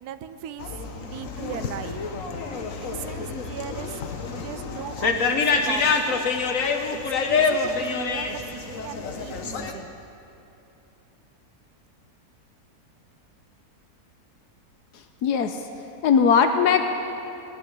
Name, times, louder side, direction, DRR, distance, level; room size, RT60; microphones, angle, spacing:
voice 1, 0.0-0.7 1.0-2.0 2.8-4.0 4.4-6.3 7.3-9.9, right 10 dB, 75° right, 10 dB, 1.2 m, -38 dB
sound 1, 0.6-9.7, left 4 dB, 60° left, 1.4 m, -27 dB
voice 2, 15.2-15.6 16.0-16.8, left 6 dB, 85° left, 7 dB, 1.3 m, -19 dB
18.5 x 7.1 x 10.0 m, 2.9 s
omnidirectional pair, 1.7 m